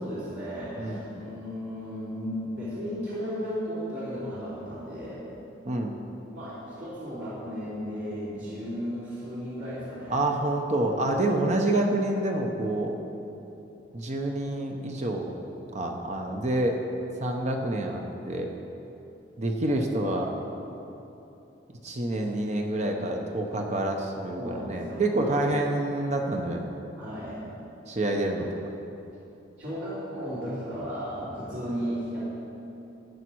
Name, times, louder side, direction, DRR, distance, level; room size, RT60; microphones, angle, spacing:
voice 1, 0.0-5.2 6.3-10.2 11.1-11.3 24.4-25.5 27.0-27.4 29.6-32.2, equal, 70° right, -11 dB, 3.4 m, -35 dB
voice 2, 10.1-12.9 13.9-15.3 15.7-16.8 17.2-18.5 19.4-20.3 21.8-26.7 27.9-28.5 31.7-31.8, right 1 dB, 40° right, 2 dB, 0.9 m, -27 dB
14.5 x 9.7 x 4.7 m, 3.0 s
head